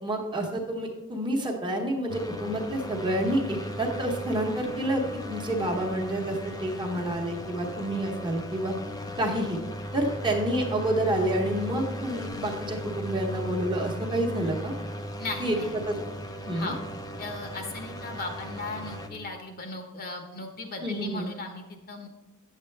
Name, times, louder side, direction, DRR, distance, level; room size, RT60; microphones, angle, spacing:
voice 1, 0.0-8.8 9.2-9.6 9.9-14.7 15.4-15.9 16.5-16.7 20.8-21.3, right 1 dB, 20° right, 0 dB, 1.1 m, -29 dB
sound 1, 2.1-19.1, equal, 15° left, 0.6 m, -37 dB
voice 2, 15.2-15.7 16.5-16.8 17.2-22.1, left 3 dB, 45° left, 4 dB, 1.1 m, -37 dB
8.8 x 7.5 x 3.3 m, 1.0 s
head